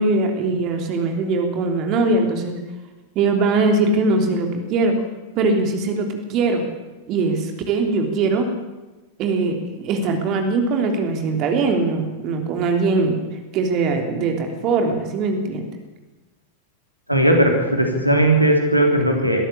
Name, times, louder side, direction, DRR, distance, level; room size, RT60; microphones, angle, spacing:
voice 1, 0.0-2.6 3.1-4.9 5.3-6.6 7.1-8.5 9.2-13.2 13.5-15.6, right 3 dB, 40° right, 4 dB, 3.3 m, -21 dB
voice 2, 17.1-19.4, right 1 dB, 90° right, 2 dB, 3.4 m, -17 dB
23.0 x 13.5 x 8.5 m, 1.1 s
figure-of-eight pair, 90°, 0 cm